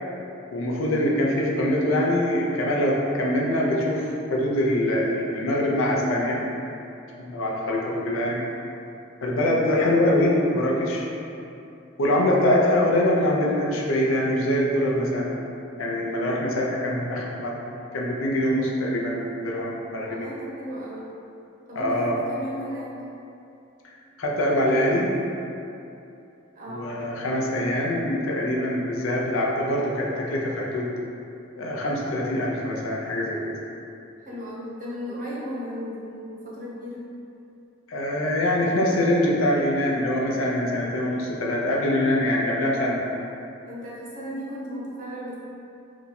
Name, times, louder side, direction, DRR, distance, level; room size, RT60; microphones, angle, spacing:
voice 1, 0.5-6.4 7.2-8.4 9.2-11.1 12.0-15.3 15.8-17.6 17.9-20.2 21.7-22.2 24.2-25.1 26.7-30.9 31.6-33.5 37.9-43.0, left 1 dB, 85° left, -3 dB, 0.5 m, -24 dB
voice 2, 7.4-8.3 9.4-9.6 12.0-12.2 16.0-16.3 20.0-21.1 21.7-23.0 26.5-26.9 34.2-37.0 43.7-45.3, equal, 40° right, -6 dB, 0.7 m, -36 dB
2.9 x 2.2 x 4.0 m, 2.7 s
head